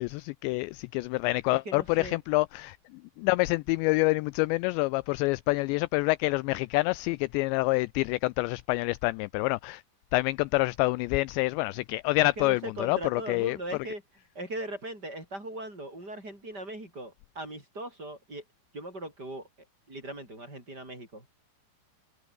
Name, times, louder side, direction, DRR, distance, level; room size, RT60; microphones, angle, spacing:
voice 1, 0.0-2.8 3.2-9.8 10.1-13.6, left 22 dB, 85° left, 2.5 m, -27 dB
voice 2, 1.6-2.2 12.4-14.0 14.3-18.4 18.7-19.5 19.9-21.3, right 1 dB, 20° right, 8.0 m, -39 dB
omnidirectional pair, 5.5 m